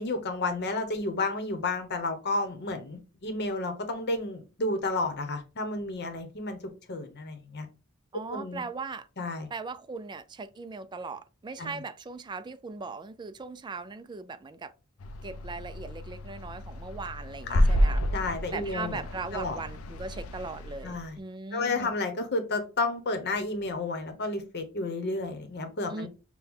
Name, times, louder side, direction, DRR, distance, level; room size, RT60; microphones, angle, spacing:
voice 1, 0.0-6.6 6.9-7.7 8.3-8.6 9.2-9.5 11.6-11.8 17.5-17.7 18.1-19.0 19.3-19.6 20.8-21.2 21.5-26.1, left 2 dB, 50° left, 0.9 m, -31 dB
voice 2, 8.1-9.1 9.5-14.7 15.2-18.0 18.5-21.9 25.9-26.1, right 4 dB, 20° right, 0.3 m, -39 dB
sound 1, 15.0-21.2, equal, 70° left, 0.5 m, -30 dB
6.1 x 2.2 x 3.6 m
head